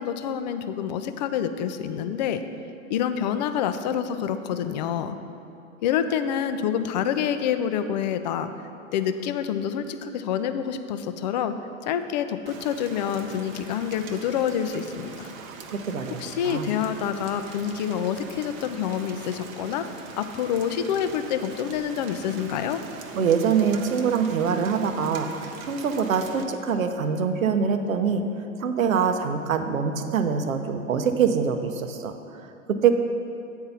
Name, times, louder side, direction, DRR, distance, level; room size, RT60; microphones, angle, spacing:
voice 1, 0.0-2.4 2.9-5.2 5.8-8.5 8.9-11.5 11.8-15.3 16.2-19.9 20.2-22.8, left 8 dB, 35° left, 10 dB, 0.4 m, -27 dB
Rain, 12.5-26.4, right 5 dB, 30° right, 0.7 m, -42 dB
voice 2, 15.3-16.7 23.1-25.3 25.7-28.2 28.6-32.1 32.8-32.9, right 6 dB, 75° right, 7 dB, 0.8 m, -24 dB
8.3 x 4.5 x 6.9 m, 2.6 s
figure-of-eight pair, 105°, 41 cm